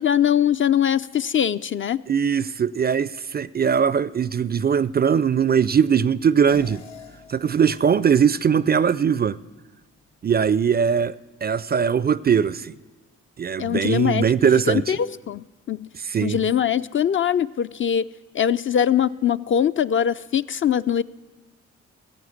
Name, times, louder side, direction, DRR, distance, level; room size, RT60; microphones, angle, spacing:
voice 1, 0.0-2.0 13.6-14.2 14.7-15.9 16.2-18.1 18.3-21.0, left 9 dB, 35° left, 0.4 m, -22 dB
voice 2, 2.1-6.8 7.3-9.4 10.2-11.2 11.4-12.7 13.4-15.0 15.9-16.4, right 7 dB, 30° right, 0.4 m, -20 dB
sound 1, 6.5-11.2, left 4 dB, 85° left, 1.4 m, -48 dB
16.5 x 7.7 x 7.2 m
hypercardioid pair, 45°, 35 cm